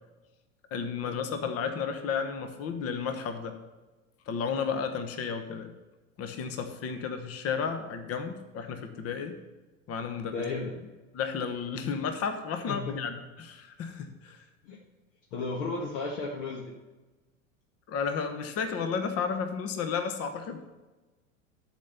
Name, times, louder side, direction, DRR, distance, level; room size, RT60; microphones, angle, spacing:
voice 1, 0.7-3.5 4.3-5.7 6.2-9.4 9.9-10.3 11.1-14.4 17.9-20.6, left 6 dB, 35° left, 7 dB, 1.1 m, -32 dB
voice 2, 10.3-10.7 12.7-13.1 14.6-14.8 15.3-16.8, left 3 dB, 60° left, -1 dB, 1.6 m, -34 dB
11.5 x 4.5 x 6.8 m, 1.2 s
hypercardioid pair, 95°, 41 cm